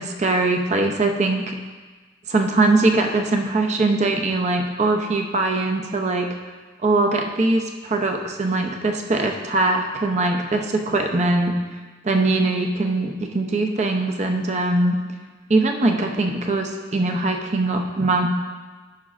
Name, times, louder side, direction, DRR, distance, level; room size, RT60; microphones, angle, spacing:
voice 1, 0.0-1.5 2.3-6.3 6.8-11.6 12.0-15.0 15.5-18.3, right 2 dB, 40° right, 3 dB, 0.6 m, -21 dB
14.0 x 6.0 x 2.5 m, 1.3 s
head